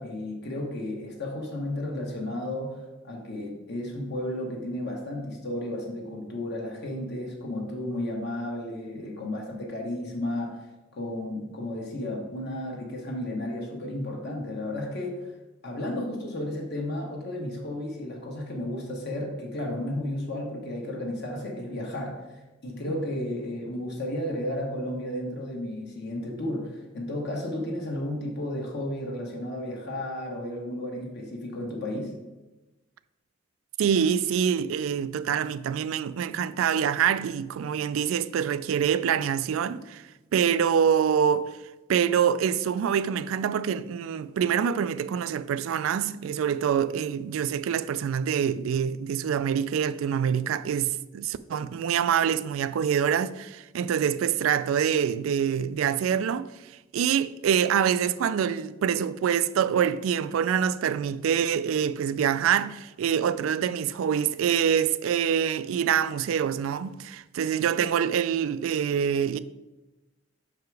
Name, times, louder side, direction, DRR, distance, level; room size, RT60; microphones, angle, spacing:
voice 1, 0.0-10.6 10.9-15.3 15.6-32.1, left 1 dB, 55° left, 1.2 m, -33 dB
voice 2, 33.8-40.0 40.3-41.4 41.9-56.5 56.9-69.4, right 8 dB, 75° right, 0.3 m, -25 dB
5.8 x 4.8 x 4.6 m
head